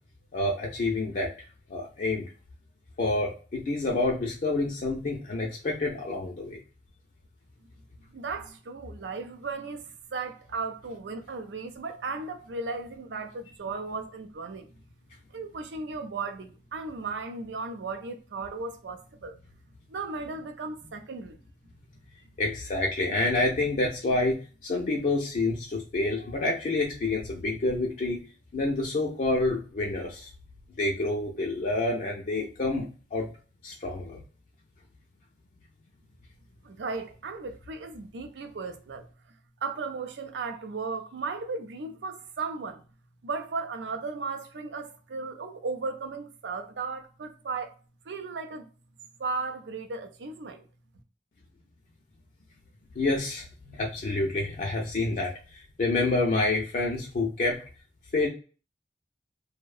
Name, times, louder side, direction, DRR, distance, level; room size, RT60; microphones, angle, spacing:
voice 1, 0.3-1.3 1.7-2.3 3.0-6.6 22.4-28.2 28.5-30.3 30.8-33.3 33.6-34.2 53.0-57.6 58.1-58.3, left 2 dB, 45° left, 0.4 m, -28 dB
voice 2, 8.1-9.9 10.1-14.7 15.3-19.4 19.9-21.4 36.6-39.1 39.6-42.8 43.2-47.8 48.1-48.7 49.2-50.6, right 4 dB, 85° right, 0.5 m, -36 dB
2.6 x 2.1 x 2.3 m
head